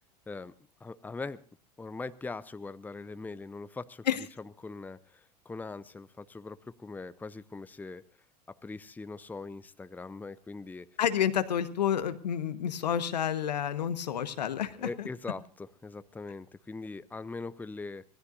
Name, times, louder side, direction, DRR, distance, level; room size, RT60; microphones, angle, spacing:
voice 1, 0.8-1.4 1.8-4.1 4.6-8.0 8.5-10.9 14.8-18.0, left 3 dB, 10° left, 14 dB, 0.7 m, -41 dB
voice 2, 11.0-15.1, left 9 dB, 80° left, 11 dB, 1.3 m, -29 dB
26.5 x 16.5 x 2.6 m, 0.39 s
hypercardioid pair, 90°, 21 cm